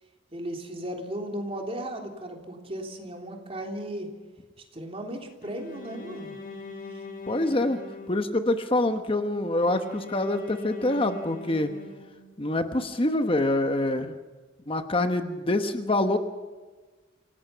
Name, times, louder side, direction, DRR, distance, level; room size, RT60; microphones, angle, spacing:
voice 1, 0.3-4.1 4.6-6.4 6.9-7.0, right 1 dB, 30° right, 2 dB, 3.4 m, -36 dB
Bowed string instrument, 5.4-8.6 9.6-12.5, left 3 dB, 45° left, 7.1 m, -42 dB
voice 2, 7.3-7.8 8.1-11.7 12.4-14.1 14.7-16.2, left 1 dB, 30° left, 7 dB, 1.1 m, -25 dB
27.0 x 18.0 x 5.8 m, 1.3 s
head